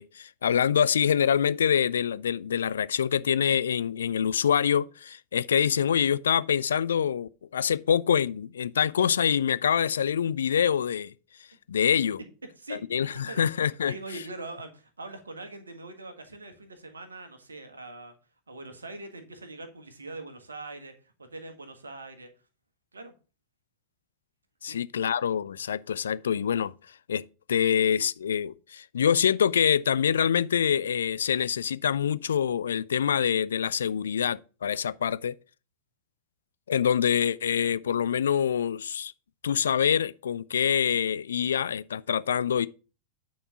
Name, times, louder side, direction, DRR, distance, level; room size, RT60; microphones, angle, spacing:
voice 1, 0.0-11.1 11.7-12.2 12.7-13.9 24.6-26.7 27.1-27.2 27.5-35.3 36.7-39.1 39.4-42.7, left 8 dB, 65° left, 0.4 m, -25 dB
voice 2, 12.6-13.4 13.9-18.1 18.5-22.3 22.9-23.1 24.6-24.8, right 2 dB, 75° right, 1.5 m, -42 dB
9.3 x 4.4 x 5.6 m
figure-of-eight pair, 90°, 0 cm